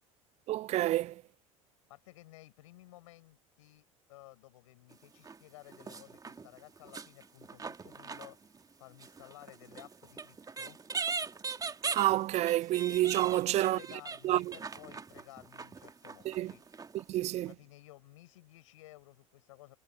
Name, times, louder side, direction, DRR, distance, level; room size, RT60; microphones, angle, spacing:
voice 1, 0.5-1.1 11.9-13.8 14.2-14.4 16.3-16.5 17.1-17.5, right 15 dB, 40° right, 0.4 m, -28 dB
voice 2, 1.9-8.4 8.8-10.8 13.3-16.6 17.4-19.8, left 18 dB, 65° left, 7.3 m, -55 dB
sound 1, 4.9-5.4 5.7-8.7 9.0-17.0 17.5-17.6, right 5 dB, 20° right, 2.3 m, -41 dB
figure-of-eight pair, 70°, 17 cm